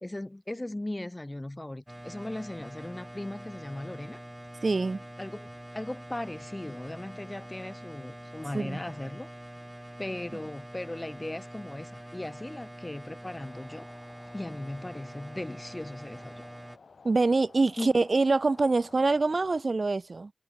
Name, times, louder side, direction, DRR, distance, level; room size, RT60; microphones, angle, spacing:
voice 1, 0.0-4.2 5.2-5.5 5.7-9.3 10.0-13.9 14.3-16.3 17.8-18.0, left 1 dB, 25° left, 0.9 m, -38 dB
sound 1, 1.9-16.8, right 1 dB, 10° right, 1.8 m, -45 dB
voice 2, 4.6-5.0 8.5-8.8 17.0-20.3, right 3 dB, 65° right, 0.5 m, -25 dB
sound 2, 13.3-19.6, left 4 dB, 90° left, 7.2 m, -54 dB
cardioid pair, 45°, 0 cm